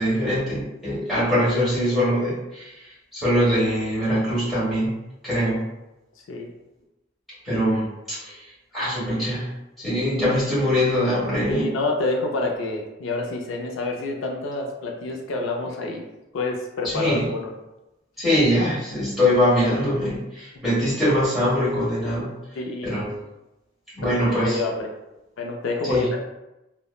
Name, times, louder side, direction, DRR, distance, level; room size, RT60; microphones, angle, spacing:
voice 1, 0.0-4.9 5.2-5.6 7.4-8.4 8.7-9.5 9.8-11.7 16.8-17.3 18.2-22.3 22.8-23.1 24.0-24.6 25.8-26.1, equal, ahead, -10 dB, 1.3 m, -22 dB
voice 2, 11.5-16.0 16.3-17.5 22.6-22.9 24.0-24.9 25.4-26.2, left 2 dB, 85° left, 1 dB, 0.4 m, -28 dB
2.9 x 2.0 x 2.3 m, 0.95 s
head